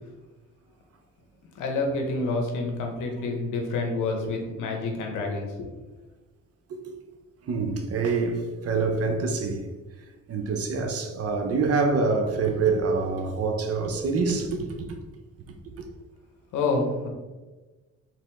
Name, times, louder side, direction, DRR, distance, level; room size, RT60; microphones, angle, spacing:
voice 1, 1.6-5.7 16.5-17.1, left 3 dB, 85° left, 0.8 m, -28 dB
voice 2, 7.4-9.7 10.3-14.9 15.7-15.8, right 4 dB, 50° right, 0.6 m, -26 dB
3.3 x 2.9 x 3.3 m
cardioid pair, 90°, 30 cm